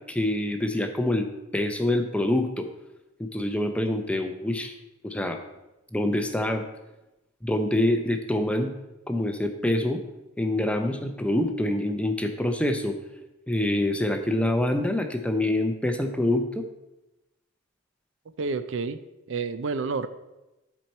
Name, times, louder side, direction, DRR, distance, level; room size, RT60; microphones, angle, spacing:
voice 1, 0.0-2.7 3.2-4.7 5.0-5.4 5.9-6.7 7.4-8.7 9.1-10.0 10.4-13.0 13.5-16.7, left 1 dB, 5° left, 6 dB, 0.5 m, -26 dB
voice 2, 18.4-19.0 19.3-20.1, right 4 dB, 60° right, 12 dB, 0.4 m, -29 dB
12.5 x 4.3 x 4.4 m, 1.0 s
head